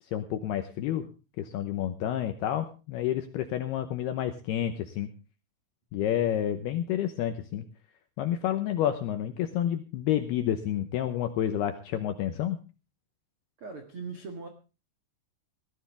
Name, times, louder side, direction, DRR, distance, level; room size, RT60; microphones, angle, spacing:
voice 1, 0.1-1.1 1.4-5.1 5.9-7.7 8.2-12.6, left 11 dB, 75° left, 8 dB, 2.5 m, -29 dB
voice 2, 13.6-14.5, right 4 dB, 70° right, 5 dB, 1.3 m, -39 dB
19.0 x 14.5 x 3.5 m, 0.33 s
omnidirectional pair, 5.6 m